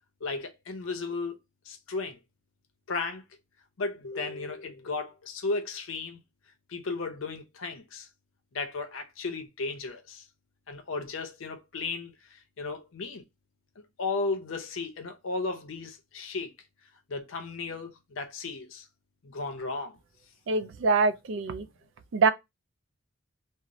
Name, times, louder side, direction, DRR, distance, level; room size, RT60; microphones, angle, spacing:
voice 1, 0.2-1.4 1.7-2.2 2.9-3.2 3.8-6.2 6.7-8.1 8.5-10.2 10.7-13.2 14.0-16.5 17.1-18.9 19.2-20.0, left 3 dB, 70° left, 0.6 m, -35 dB
voice 2, 20.5-21.6 22.1-22.3, right 4 dB, 60° right, 0.3 m, -24 dB
2.6 x 2.0 x 2.9 m
head